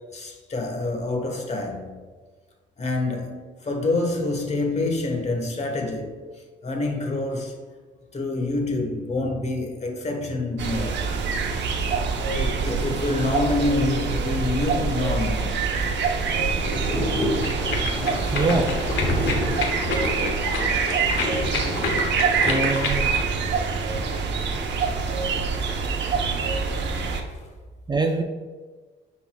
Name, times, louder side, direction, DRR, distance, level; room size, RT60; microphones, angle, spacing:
voice 1, 0.1-1.9 2.8-6.2 6.6-7.6 8.1-11.1 12.3-15.6 27.3-27.5, left 2 dB, 35° left, 1.3 m, -27 dB
sound 1, 10.6-27.2, right 5 dB, 65° right, 0.9 m, -25 dB
Thunder / Rain, 15.7-27.4, left 1 dB, 15° left, 1.4 m, -32 dB
sound 2, 17.1-23.3, left 4 dB, 75° left, 1.3 m, -30 dB
voice 2, 18.3-18.7 22.4-23.1 27.9-28.2, right 3 dB, 20° right, 0.5 m, -23 dB
10.0 x 4.1 x 2.3 m
cardioid pair, 90°, 20 cm